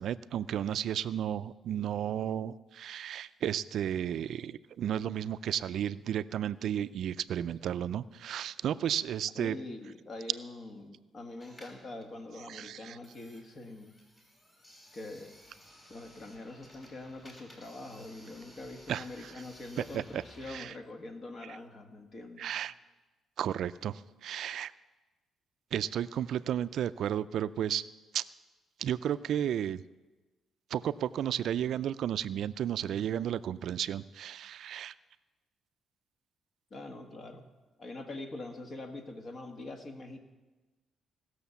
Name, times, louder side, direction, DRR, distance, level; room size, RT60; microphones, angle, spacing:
voice 1, 0.0-9.6 12.5-13.0 18.9-19.0 19.9-20.2 20.5-20.7 22.4-22.7 23.4-24.7 25.7-27.8 28.1-28.2 28.8-29.8 30.7-34.9, right 10 dB, 70° right, 15 dB, 0.4 m, -33 dB
voice 2, 9.3-14.0 14.9-15.4 15.9-22.5 36.7-37.4 37.8-40.2, left 2 dB, 50° left, 5 dB, 1.7 m, -44 dB
sound 1, 11.3-20.6, equal, 25° left, 3.4 m, -56 dB
18.0 x 6.5 x 7.0 m, 1.2 s
cardioid pair, 90°, 0 cm